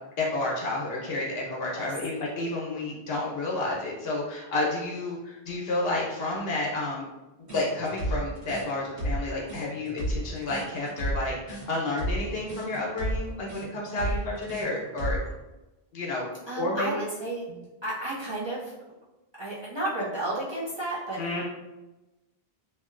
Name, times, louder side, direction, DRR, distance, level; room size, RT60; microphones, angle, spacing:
voice 1, 0.2-7.0 7.4-15.2 15.9-16.3 16.6-17.0 17.5-17.6 21.2-21.4, left 2 dB, 65° left, -3 dB, 1.0 m, -30 dB
sound 1, 7.5-15.4, right 1 dB, 80° right, 1.3 m, -32 dB
voice 2, 16.5-17.5 17.8-18.7 19.4-21.4, right 2 dB, 35° right, -9 dB, 0.5 m, -32 dB
2.8 x 2.7 x 2.5 m, 1.0 s
omnidirectional pair, 1.1 m